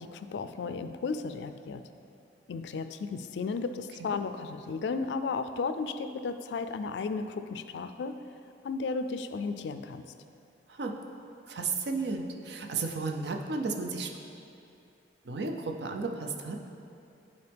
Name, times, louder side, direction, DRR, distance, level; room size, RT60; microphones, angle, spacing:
voice 1, 0.0-1.9 2.5-8.2 8.6-10.1, left 4 dB, 75° left, 10 dB, 0.3 m, -34 dB
voice 2, 11.5-14.1 15.2-16.6, right 4 dB, 65° right, 3 dB, 0.6 m, -33 dB
9.7 x 4.1 x 3.4 m, 2.7 s
head